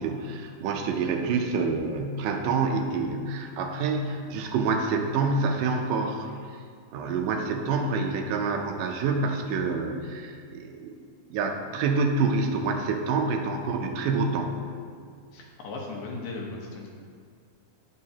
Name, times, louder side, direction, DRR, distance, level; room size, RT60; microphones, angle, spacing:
voice 1, 0.0-6.3 6.9-11.0 11.3-14.5, right 4 dB, 80° right, 3 dB, 2.2 m, -27 dB
voice 2, 15.3-16.9, left 3 dB, 80° left, -1 dB, 2.8 m, -37 dB
9.3 x 9.0 x 2.8 m, 2.1 s
omnidirectional pair, 3.9 m